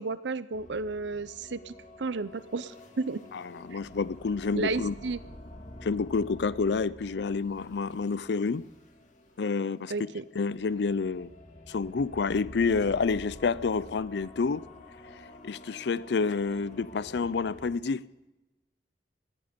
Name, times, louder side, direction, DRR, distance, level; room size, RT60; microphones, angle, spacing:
voice 1, 0.0-3.2 4.5-5.2 9.9-10.2, right 3 dB, 80° right, 0.7 m, -33 dB
sound 1, 0.5-17.7, left 1 dB, 45° left, 2.2 m, -49 dB
voice 2, 3.3-4.9 5.8-8.6 9.4-9.9 10.3-11.3 11.7-14.7 15.1-18.1, left 4 dB, 65° left, 0.5 m, -29 dB
19.5 x 14.0 x 5.2 m
head